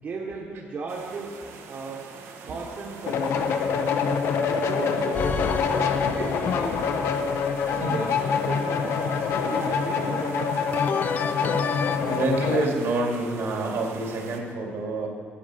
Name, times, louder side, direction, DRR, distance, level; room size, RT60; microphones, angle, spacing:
voice 1, 0.0-1.3 1.7-2.1 2.4-3.8 4.5-6.9 7.7-10.7, right 4 dB, 40° right, -2 dB, 1.2 m, -36 dB
sound 1, 0.9-14.4, right 5 dB, 90° right, 1.2 m, -44 dB
sound 2, 3.1-12.7, left 6 dB, 75° left, 0.9 m, -26 dB
sound 3, 5.1-8.2 10.7-12.0, left 5 dB, 35° left, 0.4 m, -31 dB
voice 2, 12.0-15.1, right 2 dB, 70° right, 0 dB, 2.4 m, -27 dB
10.0 x 8.6 x 7.7 m, 2.2 s
cardioid pair, 165°, 4 cm